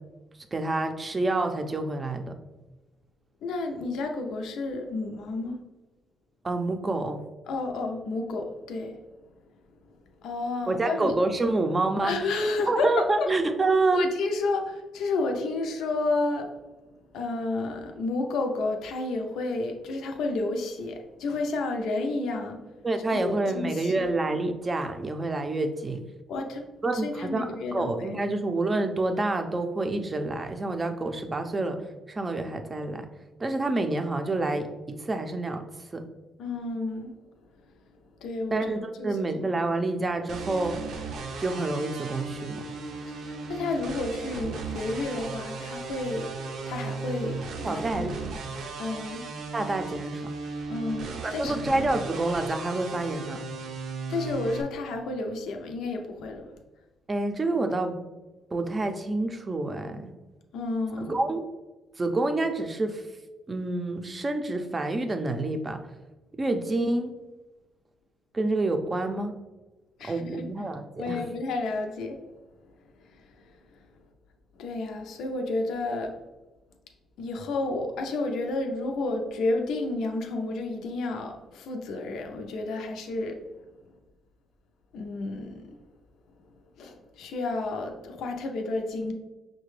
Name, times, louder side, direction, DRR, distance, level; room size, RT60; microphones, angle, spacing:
voice 1, 0.5-2.3 6.4-7.2 10.7-12.1 12.7-14.1 22.8-26.0 26.8-27.5 27.7-31.8 32.1-33.1 33.4-35.6 35.9-36.0 38.5-40.8 41.4-42.6 47.6-48.3 49.5-50.3 51.2-53.4 57.1-58.0 58.5-60.1 61.1-61.4 62.0-63.0 63.5-65.8 66.4-67.1 68.3-69.4 70.1-71.2, right 2 dB, 25° right, 6 dB, 0.5 m, -28 dB
voice 2, 3.4-5.6 7.5-9.0 10.2-11.1 12.0-13.3 13.9-16.5 17.1-22.7 23.1-24.1 26.3-26.7 26.9-27.9 36.4-37.1 38.2-38.7 39.0-39.1 43.1-46.3 46.7-48.0 48.8-49.3 50.7-51.6 54.1-56.5 60.5-61.2 70.0-70.5 71.0-72.2 73.0-73.8 74.6-76.1 77.2-83.4 84.9-85.8 86.8-89.1, left 2 dB, 80° left, 4 dB, 0.5 m, -31 dB
sound 1, 40.3-54.6, right 4 dB, 75° right, 0.5 m, -36 dB
5.7 x 2.2 x 3.1 m, 1.1 s
cardioid pair, 90°, 0 cm